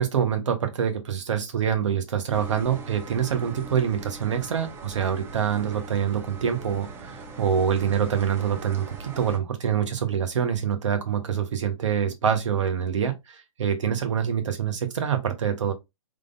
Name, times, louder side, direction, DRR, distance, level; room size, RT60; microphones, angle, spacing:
voice 1, 0.0-15.7, right 8 dB, 60° right, 1.2 m, -25 dB
sound 1, 2.3-9.4, right 3 dB, 15° right, 0.5 m, -41 dB
3.8 x 3.3 x 2.6 m
figure-of-eight pair, 125°, 18 cm